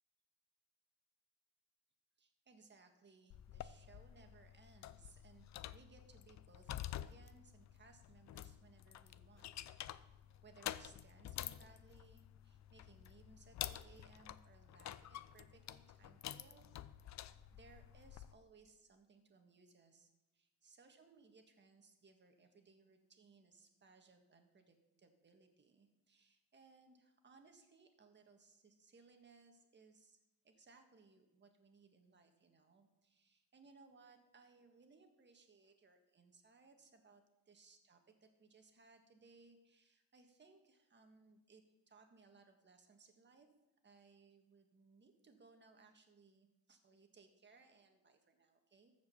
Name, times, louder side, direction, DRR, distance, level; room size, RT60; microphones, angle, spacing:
voice 1, 2.2-9.6 10.4-16.7 17.0-30.2 30.4-43.5 43.8-48.9, right 4 dB, 30° right, 5 dB, 1.7 m, -65 dB
sound 1, 3.3-18.3, left 12 dB, 50° left, 0.5 m, -49 dB
14.0 x 5.2 x 6.9 m, 0.96 s
cardioid pair, 110°, 36 cm